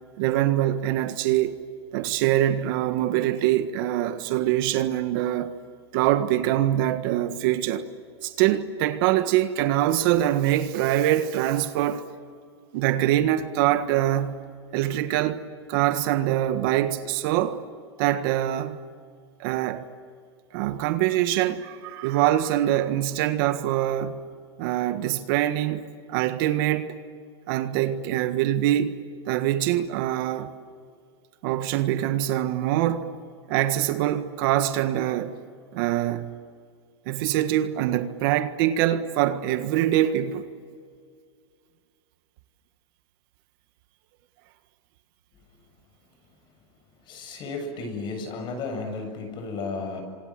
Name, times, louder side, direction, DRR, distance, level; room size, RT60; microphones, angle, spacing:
voice 1, 0.2-1.6 1.9-5.5 5.9-7.9 8.2-12.1 12.7-14.4 14.7-17.6 18.0-18.8 19.4-19.9 20.5-24.2 24.6-27.0 27.5-30.6 31.4-33.1 33.5-35.4 35.7-36.3 37.1-40.5, right 13 dB, 55° right, 1.6 m, -24 dB
voice 2, 47.0-50.0, left 3 dB, 35° left, 7.5 m, -33 dB
29.0 x 26.0 x 7.7 m
supercardioid pair, 135°, 14 cm